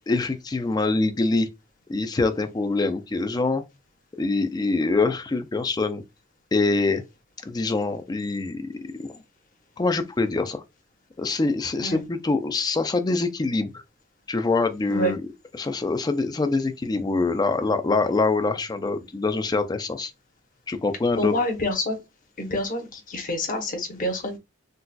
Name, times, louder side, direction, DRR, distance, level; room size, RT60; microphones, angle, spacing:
voice 1, 0.1-1.5 1.9-3.6 4.2-6.0 6.5-7.0 7.4-8.7 9.0-9.2 9.8-10.6 11.2-13.8 14.3-15.3 15.5-20.1 20.7-21.3, left 3 dB, 20° left, 0.3 m, -24 dB
voice 2, 21.2-22.0 22.4-24.4, left 1 dB, 40° left, 0.9 m, -27 dB
3.9 x 2.3 x 2.2 m
head